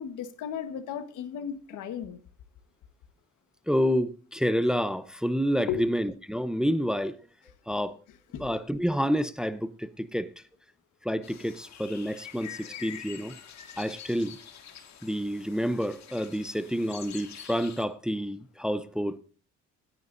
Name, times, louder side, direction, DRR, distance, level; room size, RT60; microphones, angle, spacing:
voice 1, 0.0-2.2 5.7-5.9 8.3-8.4, left 8 dB, 85° left, 1.4 m, -35 dB
voice 2, 3.7-7.2 7.7-8.0 8.4-10.4 11.0-13.3 13.8-14.4 15.0-19.2, equal, ahead, 0.7 m, -29 dB
sound 1, 11.2-17.9, left 9 dB, 65° left, 1.9 m, -46 dB
17.5 x 9.7 x 2.6 m
cardioid pair, 90°, 30 cm